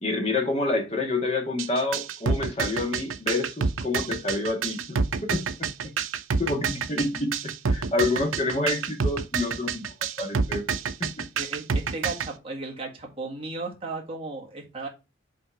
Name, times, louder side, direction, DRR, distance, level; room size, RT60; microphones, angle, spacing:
voice 1, 0.0-5.0 5.3-5.9 6.4-9.8 10.2-10.6 11.0-11.2, left 2 dB, 30° left, 1.7 m, -28 dB
sound 1, 1.6-12.3, right 5 dB, 85° right, 0.6 m, -27 dB
voice 2, 11.3-14.9, right 3 dB, 30° right, 1.8 m, -35 dB
5.7 x 3.6 x 4.6 m
head